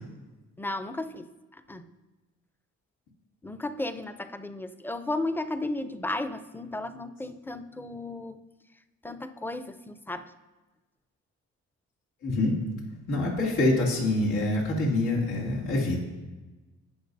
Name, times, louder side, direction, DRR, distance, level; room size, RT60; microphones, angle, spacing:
voice 1, 0.6-1.9 3.4-8.4 9.0-10.3, left 2 dB, 5° left, 11 dB, 0.6 m, -34 dB
voice 2, 12.2-12.6 13.1-16.0, left 2 dB, 85° left, -3 dB, 2.6 m, -25 dB
17.0 x 6.3 x 2.7 m, 1.2 s
cardioid pair, 90°, 30 cm